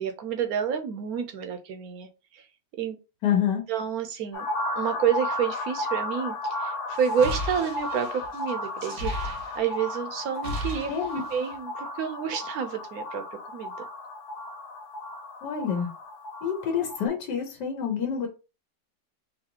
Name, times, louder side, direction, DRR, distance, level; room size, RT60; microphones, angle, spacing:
voice 1, 0.0-2.1 2.3-2.4 2.8-3.0 3.7-4.4 4.7-9.1 9.5-10.9 11.3-13.2 13.5-13.7, right 8 dB, 70° right, 7 dB, 1.0 m, -29 dB
voice 2, 3.2-3.6 10.9-11.2 15.4-15.9 16.4-18.3, left 8 dB, 85° left, 3 dB, 1.4 m, -27 dB
sound 1, 4.3-17.1, left 2 dB, 65° left, 1.3 m, -34 dB
sound 2, 7.0-9.9 10.2-11.6, equal, 90° right, 1.7 m, -36 dB
4.0 x 2.7 x 2.8 m, 0.30 s
omnidirectional pair, 1.8 m